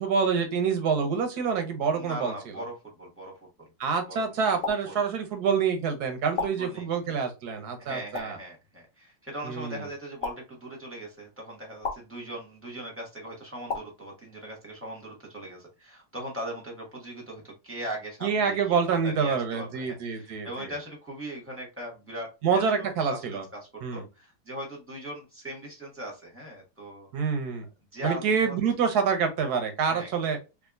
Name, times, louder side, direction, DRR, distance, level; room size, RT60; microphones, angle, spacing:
voice 1, 0.0-2.3 3.8-8.4 9.4-9.8 18.2-20.7 22.4-23.4 23.8-24.0 27.1-27.6 28.0-30.4, right 6 dB, 60° right, 6 dB, 1.2 m, -27 dB
voice 2, 1.9-3.7 4.1-4.3 4.6-5.0 6.4-7.0 7.8-27.1 27.9-28.5 29.9-30.1, right 1 dB, 10° right, -2 dB, 1.1 m, -40 dB
sound 1, 4.6-4.8 6.3-6.5 8.1-8.3 10.2-10.3 11.8-12.0 13.7-13.8, left 4 dB, 55° left, 1.1 m, -30 dB
3.6 x 2.5 x 2.4 m, 0.27 s
omnidirectional pair, 2.1 m